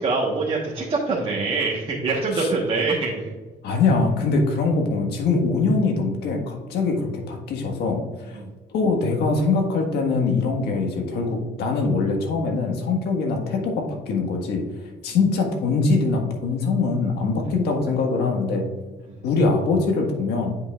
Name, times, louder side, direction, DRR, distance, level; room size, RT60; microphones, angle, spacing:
voice 1, 0.0-3.3 8.3-8.5 19.1-19.2, right 3 dB, 35° right, -3 dB, 1.2 m, -24 dB
voice 2, 3.6-8.4 8.7-18.7 19.2-20.6, left 3 dB, 75° left, 3 dB, 1.6 m, -23 dB
9.6 x 5.6 x 2.4 m, 1.3 s
cardioid pair, 110°, 17 cm